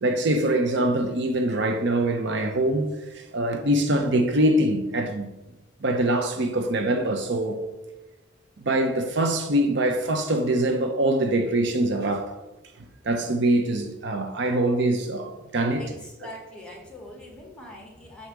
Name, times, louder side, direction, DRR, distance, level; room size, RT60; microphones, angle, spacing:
voice 1, 0.0-5.3 5.8-7.6 8.6-12.3 13.0-15.8, right 1 dB, 60° right, 0.7 m, -24 dB
voice 2, 15.8-18.3, left 1 dB, 5° left, 1.5 m, -43 dB
7.9 x 2.8 x 6.0 m
head